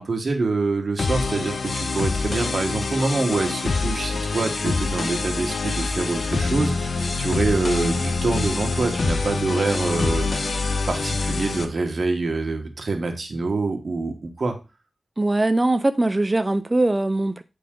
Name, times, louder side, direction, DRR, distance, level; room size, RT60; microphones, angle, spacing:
voice 1, 0.0-10.3 10.9-14.6, right 3 dB, 60° right, 1.4 m, -25 dB
sound 1, 1.0-11.6, left 3 dB, 65° left, 0.8 m, -25 dB
voice 2, 15.2-17.4, right 2 dB, 25° right, 0.4 m, -21 dB
8.6 x 3.9 x 3.8 m
cardioid pair, 60°, 0 cm